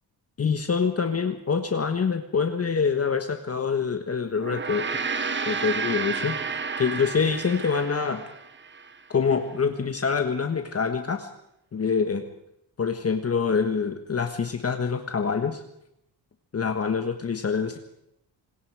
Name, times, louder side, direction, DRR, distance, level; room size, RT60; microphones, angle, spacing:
voice 1, 0.4-5.0 5.5-6.4 6.8-8.2 9.1-11.3 11.7-12.2 12.8-15.6 16.5-17.8, left 5 dB, 35° left, 6 dB, 1.4 m, -25 dB
Gong, 4.3-9.0, right 5 dB, 25° right, 1.3 m, -31 dB
26.5 x 21.0 x 4.8 m, 0.81 s
cardioid pair, 120°, 44 cm